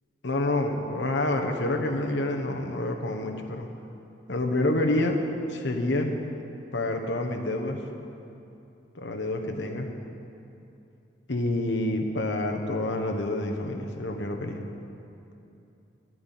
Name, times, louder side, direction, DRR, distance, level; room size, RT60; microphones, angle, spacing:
voice 1, 0.2-3.7 4.3-5.2 5.5-6.2 6.7-7.8 8.9-9.9 11.3-14.6, left 2 dB, 90° left, 3 dB, 1.1 m, -28 dB
10.0 x 9.4 x 7.6 m, 2.8 s
head